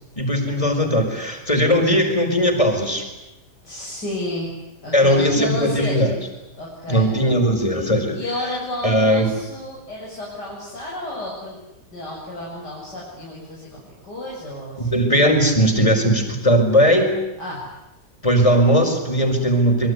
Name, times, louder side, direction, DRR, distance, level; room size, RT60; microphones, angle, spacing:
voice 1, 0.2-3.0 4.9-6.1 6.9-8.2 8.8-9.3 14.8-17.1 18.2-19.9, equal, 20° left, 4 dB, 5.0 m, -18 dB
voice 2, 3.6-4.6 4.8-6.0 6.5-7.1 8.1-11.6 11.9-15.0 17.4-17.7, left 1 dB, 80° left, -4 dB, 7.4 m, -31 dB
26.0 x 23.5 x 9.8 m, 0.95 s
omnidirectional pair, 1.8 m